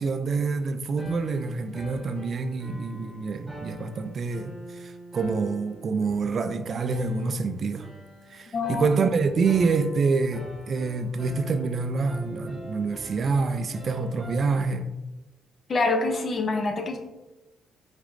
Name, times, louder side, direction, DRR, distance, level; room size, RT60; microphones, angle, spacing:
voice 1, 0.0-7.9 8.3-14.9, right 4 dB, 50° right, 0.4 m, -27 dB
sound 1, 1.0-14.6, equal, 5° right, 1.4 m, -44 dB
voice 2, 8.5-8.9 15.7-17.0, left 3 dB, 45° left, 0.7 m, -25 dB
4.9 x 4.1 x 2.5 m
cardioid pair, 90°, 0 cm